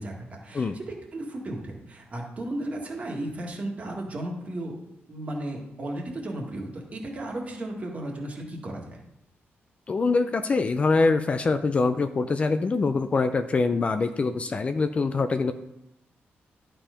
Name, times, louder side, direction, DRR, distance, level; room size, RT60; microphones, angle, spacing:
voice 1, 0.0-4.7 5.1-9.0, right 1 dB, 35° right, 0 dB, 1.8 m, -35 dB
voice 2, 9.9-15.5, left 4 dB, 30° left, 9 dB, 0.4 m, -24 dB
11.0 x 4.5 x 5.1 m, 0.84 s
wide cardioid pair, 150°, 4 cm